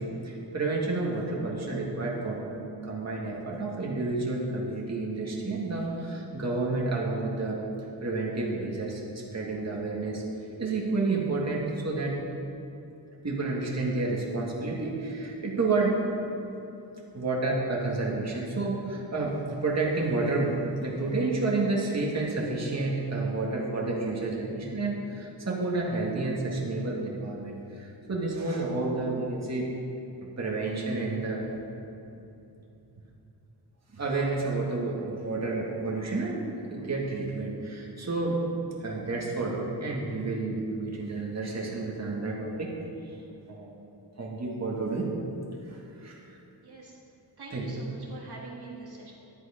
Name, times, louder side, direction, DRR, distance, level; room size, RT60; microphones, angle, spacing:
voice 1, 0.0-7.6 8.0-10.2 10.6-12.2 13.2-16.0 17.1-19.3 19.6-29.7 30.4-31.5 33.9-38.4 38.8-42.7 43.5-43.9 44.2-45.1 45.7-46.2 47.5-47.7, right 3 dB, 35° right, -3 dB, 1.8 m, -30 dB
voice 2, 47.4-49.1, right 3 dB, 60° right, -3 dB, 1.7 m, -44 dB
11.0 x 8.1 x 5.0 m, 2.8 s
wide cardioid pair, 95°, 44 cm